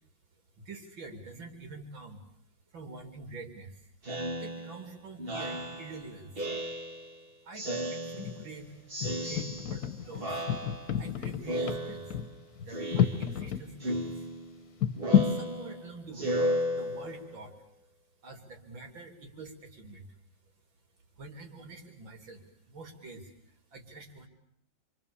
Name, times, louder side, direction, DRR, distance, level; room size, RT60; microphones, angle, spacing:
voice 1, 0.6-2.2 2.7-3.8 4.4-6.3 7.5-8.7 9.1-10.4 11.0-12.1 12.6-14.3 15.2-16.4 16.7-17.6 18.2-20.1 21.2-23.3 23.7-24.3, right 3 dB, 75° right, 4 dB, 3.9 m, -46 dB
Speech synthesizer, 4.0-7.2 7.5-8.6 8.9-9.9 10.2-11.1 11.5-12.4 12.7-13.5 13.8-17.3, equal, 30° right, 1.8 m, -35 dB
sound 1, 8.1-8.5 9.0-13.6 14.0-14.1 14.8-15.4, left 9 dB, 55° left, 1.6 m, -29 dB
28.0 x 24.0 x 7.1 m, 0.70 s
omnidirectional pair, 2.2 m